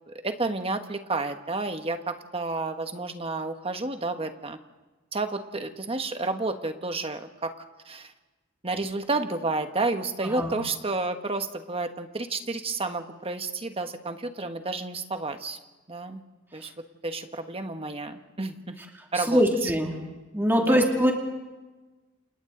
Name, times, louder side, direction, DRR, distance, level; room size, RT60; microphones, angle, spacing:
voice 1, 0.1-4.6 5.1-7.5 7.8-8.1 8.6-15.6 15.9-16.2 16.5-16.7 17.0-18.8 19.1-19.7 20.7-20.9, right 3 dB, 30° right, 7 dB, 1.3 m, -31 dB
voice 2, 19.1-19.9 20.3-21.1, equal, 10° right, 0 dB, 2.4 m, -22 dB
29.5 x 27.5 x 3.9 m, 1.2 s
head